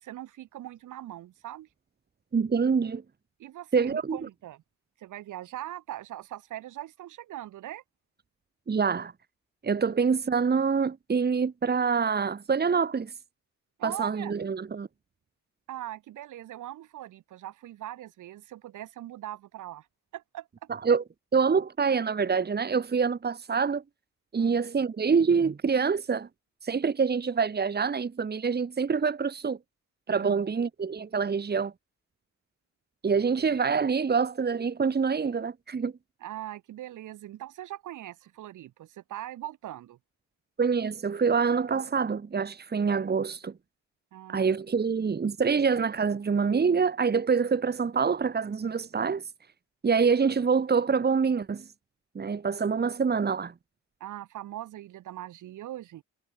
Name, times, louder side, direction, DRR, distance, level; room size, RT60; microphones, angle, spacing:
voice 1, 0.0-1.7 3.4-4.6 5.0-7.8 9.8-9.9 13.8-14.3 15.7-19.9 20.1-20.5 24.4-24.6 30.2-30.4 36.2-40.0 44.1-44.5 54.0-56.0, right 13 dB, 80° right, 4.8 m, -41 dB
voice 2, 2.3-3.0 3.7-4.2 8.7-9.1 9.6-13.1 13.8-14.9 20.8-21.0 21.3-23.8 24.3-26.3 26.6-29.6 30.1-31.7 33.0-35.9 40.6-43.5 44.3-49.2 49.8-51.6 52.1-53.5, right 5 dB, 35° right, 2.3 m, -26 dB
cardioid pair, 90°, 30 cm